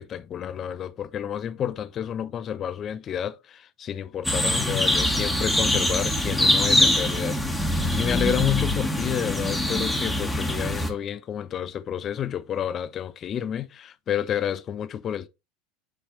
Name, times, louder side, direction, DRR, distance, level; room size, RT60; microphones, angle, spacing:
voice 1, 0.0-15.3, left 9 dB, 35° left, 0.6 m, -30 dB
sound 1, 4.2-10.9, left 1 dB, 5° left, 1.6 m, -23 dB
8.3 x 3.3 x 4.0 m
hypercardioid pair, 80°, 0 cm